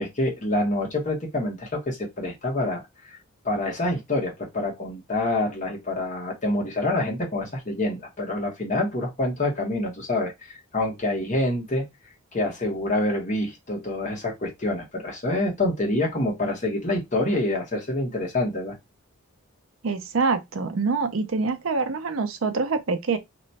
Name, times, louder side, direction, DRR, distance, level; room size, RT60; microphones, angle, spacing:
voice 1, 0.0-3.2 3.4-11.8 12.3-18.7, left 1 dB, 35° left, 1.1 m, -27 dB
voice 2, 19.8-23.2, right 4 dB, 70° right, 0.6 m, -25 dB
3.0 x 2.2 x 4.0 m
head